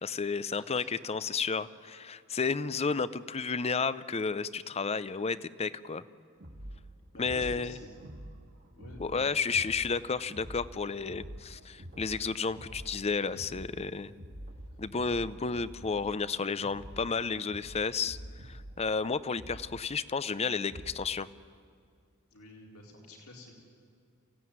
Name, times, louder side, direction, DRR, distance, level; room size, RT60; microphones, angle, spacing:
voice 1, 0.0-6.0 7.2-7.8 9.0-14.1 14.8-21.3, left 5 dB, 30° left, 16 dB, 0.6 m, -32 dB
voice 2, 0.5-0.9 6.5-6.7 7.1-7.9 8.8-9.4 22.3-23.5, left 1 dB, 75° left, -1 dB, 4.1 m, -50 dB
sound 1, 6.4-21.2, equal, 50° right, 1.8 m, -47 dB
28.5 x 16.0 x 9.4 m, 2.2 s
head